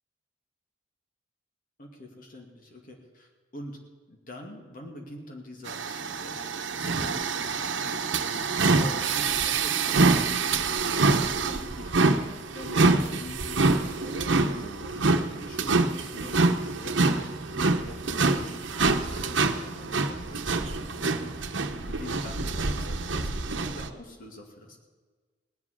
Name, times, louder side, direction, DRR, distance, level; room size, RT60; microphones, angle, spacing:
voice 1, 1.8-3.8 4.1-12.3 12.5-12.9 13.2-16.4 16.8-21.4 21.7-24.8, left 1 dB, 50° left, 1 dB, 2.4 m, -45 dB
sound 1, 5.7-23.9, right 3 dB, 90° right, 1.0 m, -26 dB
18.0 x 7.4 x 9.8 m, 1.4 s
head